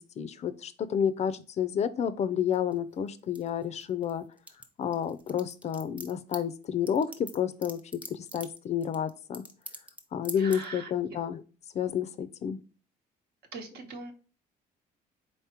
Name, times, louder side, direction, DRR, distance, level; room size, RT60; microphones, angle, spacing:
voice 1, 0.2-4.2 4.8-7.8 8.1-9.4 10.1-11.4 11.7-12.6, left 8 dB, 40° left, 14 dB, 0.4 m, -30 dB
sound 1, 2.5-4.1 4.4-10.0 10.2-10.6, right 1 dB, 10° right, 0.7 m, -43 dB
voice 2, 10.4-10.9 13.5-14.1, right 4 dB, 70° right, 5 dB, 1.1 m, -41 dB
4.2 x 3.5 x 2.8 m, 0.37 s
cardioid pair, 110°, 17 cm